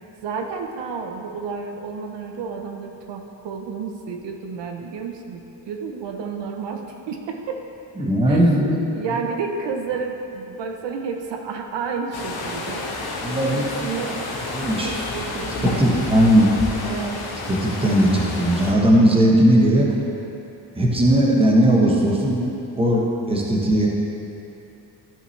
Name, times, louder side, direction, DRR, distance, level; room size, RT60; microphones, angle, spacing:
voice 1, 0.2-7.6 8.3-8.5 8.9-12.9 13.5-14.3 14.8-15.9 16.8-17.3, right 5 dB, 70° right, 3 dB, 0.8 m, -31 dB
voice 2, 8.0-9.0 13.2-14.1 14.5-14.9 15.4-16.5 17.5-20.0 20.8-22.5 22.8-23.9, right 1 dB, 10° right, -2 dB, 1.0 m, -18 dB
sound 1, 12.1-18.7, left 3 dB, 55° left, 1.2 m, -30 dB
13.5 x 5.7 x 3.2 m, 2.9 s
cardioid pair, 160°, 45 cm